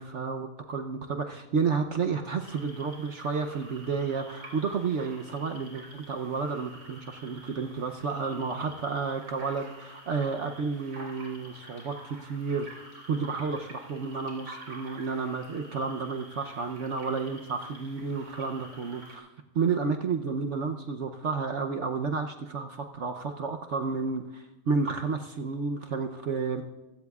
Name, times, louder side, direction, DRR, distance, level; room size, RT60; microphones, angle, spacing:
voice 1, 0.0-19.3 19.5-26.6, right 5 dB, 60° right, 4 dB, 1.0 m, -31 dB
sound 1, 2.4-19.2, right 1 dB, 85° right, 4.7 m, -49 dB
26.5 x 16.0 x 2.4 m, 1.1 s
omnidirectional pair, 1.5 m